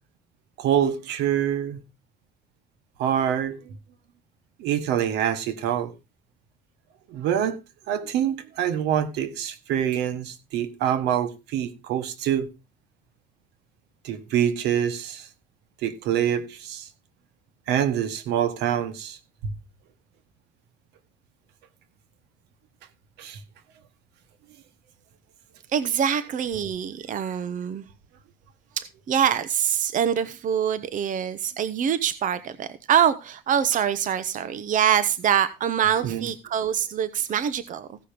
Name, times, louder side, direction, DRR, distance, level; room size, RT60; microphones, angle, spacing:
voice 1, 0.6-1.8 3.0-3.8 4.6-5.9 7.1-7.6 7.9-12.5 14.0-15.3 15.8-16.9 17.7-19.2 23.2-23.4 36.0-36.3, right 10 dB, 85° right, 1.6 m, -25 dB
voice 2, 25.7-27.8 28.8-38.0, right 9 dB, 50° right, 1.0 m, -24 dB
16.0 x 5.9 x 5.1 m
cardioid pair, 110°, 17 cm